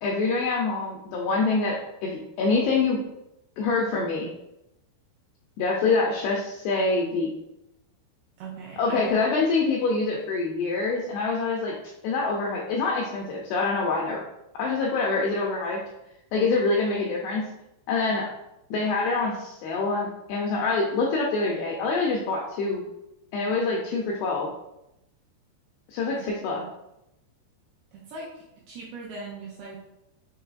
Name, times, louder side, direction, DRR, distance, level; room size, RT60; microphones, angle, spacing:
voice 1, 0.0-3.0 3.6-4.3 5.6-7.3 8.8-11.7 12.0-14.2 14.5-15.8 16.3-17.4 17.9-18.3 18.7-22.8 23.3-24.5 25.9-26.6, left 3 dB, 90° left, -2 dB, 2.2 m, -25 dB
voice 2, 8.4-9.2 26.2-26.7 27.9-28.3 28.7-29.8, right 4 dB, 80° right, -4 dB, 2.3 m, -40 dB
6.7 x 3.3 x 2.4 m, 0.88 s
omnidirectional pair, 5.2 m